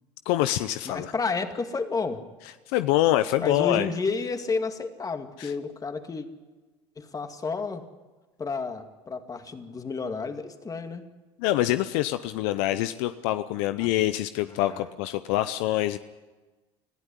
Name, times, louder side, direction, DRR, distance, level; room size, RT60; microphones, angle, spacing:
voice 1, 0.3-1.1 2.7-3.9 5.4-5.5 11.4-16.0, left 14 dB, 75° left, 12 dB, 0.7 m, -25 dB
voice 2, 0.9-2.2 3.4-6.3 7.0-7.8 8.4-11.1 13.8-13.9 14.5-14.8, left 4 dB, 25° left, 7 dB, 2.3 m, -31 dB
21.0 x 14.5 x 10.0 m, 1.2 s
supercardioid pair, 85°, 13 cm